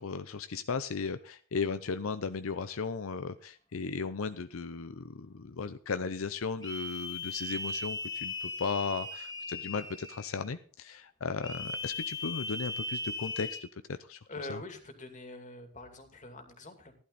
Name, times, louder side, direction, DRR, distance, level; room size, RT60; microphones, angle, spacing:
voice 1, 0.0-14.2 14.5-14.6, left 5 dB, 80° left, 11 dB, 0.6 m, -36 dB
sound 1, 6.6-10.5 11.4-13.6, left 2 dB, 20° left, 1.9 m, -38 dB
voice 2, 14.3-16.9, left 2 dB, 40° left, 6 dB, 2.6 m, -44 dB
15.5 x 11.5 x 4.1 m, 0.42 s
head